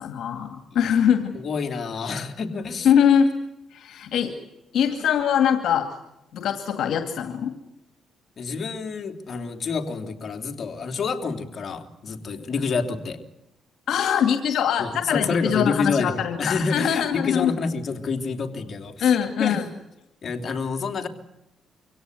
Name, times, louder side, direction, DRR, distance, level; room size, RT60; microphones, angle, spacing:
voice 1, 0.0-1.3 2.8-3.3 3.7-4.3 4.7-5.9 6.3-7.5 13.9-17.5 19.0-19.7, left 8 dB, 75° left, 6 dB, 2.2 m, -22 dB
voice 2, 1.3-2.9 8.4-13.2 14.8-19.6 20.2-21.1, left 4 dB, 50° left, 4 dB, 3.2 m, -28 dB
25.0 x 17.0 x 9.5 m, 0.91 s
cardioid pair, 90°, 0 cm